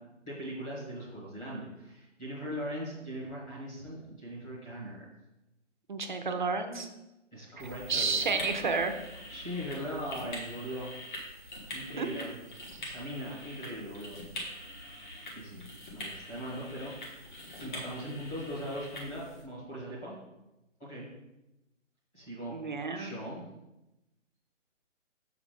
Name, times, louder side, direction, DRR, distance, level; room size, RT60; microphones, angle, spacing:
voice 1, 0.2-5.1 7.3-8.2 9.3-10.9 11.7-12.3 12.8-14.2 15.3-15.7 15.9-17.3 17.6-20.2 20.8-21.1 22.1-22.5 22.9-23.4, equal, 10° left, -8 dB, 1.2 m, -40 dB
voice 2, 5.9-6.9 7.9-8.9 12.0-12.1 22.5-23.1, right 4 dB, 40° right, 6 dB, 0.7 m, -30 dB
sound 1, 7.6-19.4, left 1 dB, 40° left, 1.8 m, -44 dB
7.0 x 4.0 x 5.0 m, 0.96 s
hypercardioid pair, 170°, 37 cm